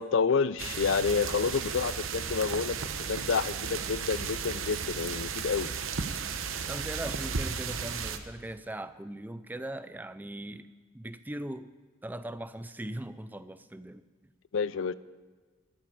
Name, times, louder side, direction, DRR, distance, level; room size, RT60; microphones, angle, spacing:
voice 1, 0.0-2.8 3.1-5.7 14.5-14.9, left 5 dB, 60° left, 17 dB, 0.4 m, -29 dB
sound 1, 0.6-8.2, right 6 dB, 70° right, 0.9 m, -34 dB
voice 2, 6.7-10.7 10.9-11.7 12.0-14.0, right 1 dB, 10° right, 13 dB, 0.4 m, -39 dB
13.5 x 7.5 x 8.5 m, 1.4 s
head